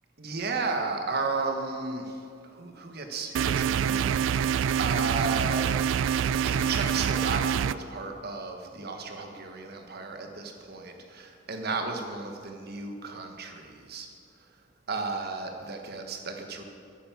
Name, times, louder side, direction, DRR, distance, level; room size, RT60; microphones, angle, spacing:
voice 1, 0.2-5.8 6.1-14.1 14.9-16.6, right 3 dB, 55° right, 4 dB, 1.3 m, -34 dB
sound 1, 3.3-7.7, right 8 dB, 70° right, 0.3 m, -26 dB
9.3 x 9.3 x 6.9 m, 2.3 s
head